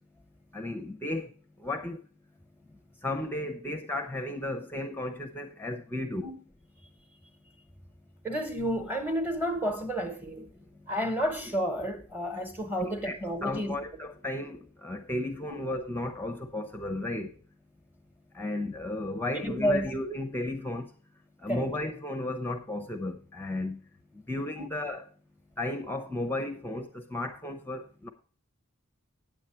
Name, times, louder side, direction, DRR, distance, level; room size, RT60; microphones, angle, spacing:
voice 1, 0.5-1.3 1.6-2.0 3.0-6.3 12.8-17.3 18.3-20.9 21.4-23.8 24.3-25.0 25.6-28.1, left 1 dB, 10° left, 0.6 m, -34 dB
voice 2, 8.2-10.5 10.9-13.8 19.3-19.9 21.5-21.7, equal, 10° right, 1.1 m, -30 dB
9.2 x 7.9 x 4.3 m
head